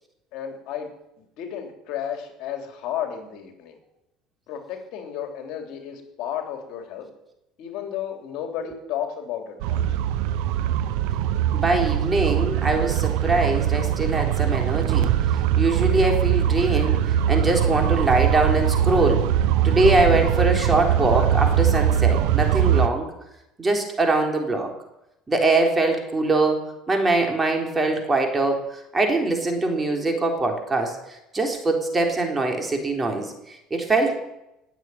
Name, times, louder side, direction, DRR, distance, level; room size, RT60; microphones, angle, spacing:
voice 1, 0.3-0.9 1.2-3.8 4.5-7.1 7.6-9.8, left 9 dB, 65° left, 5 dB, 3.3 m, -33 dB
sound 1, 9.6-22.9, right 10 dB, 75° right, 1.0 m, -21 dB
voice 2, 11.5-15.1 15.6-19.3 19.6-23.1 23.6-24.7 25.3-26.6 26.9-34.1, right 2 dB, 20° right, 3 dB, 3.8 m, -23 dB
19.0 x 8.1 x 9.1 m, 0.87 s
supercardioid pair, 110°, 0 cm